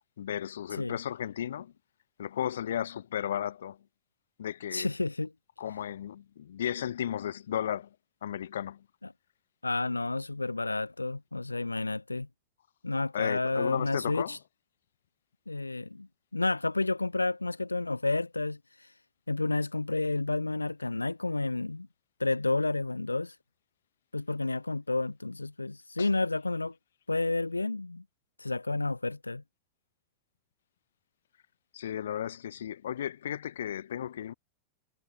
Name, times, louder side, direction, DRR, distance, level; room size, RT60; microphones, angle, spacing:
voice 1, 0.2-1.7 2.2-3.8 4.4-4.9 5.6-7.9 8.2-8.8 13.1-14.4 26.0-26.1 31.7-34.3, left 10 dB, 65° left, 3.3 m, -34 dB
voice 2, 4.7-5.3 9.6-12.3 12.8-14.4 15.5-16.1 16.3-18.9 19.3-21.9 22.2-23.3 24.1-26.7 27.1-28.0 28.4-29.4, left 2 dB, 80° left, 4.5 m, -30 dB
figure-of-eight pair, 90°, 0 cm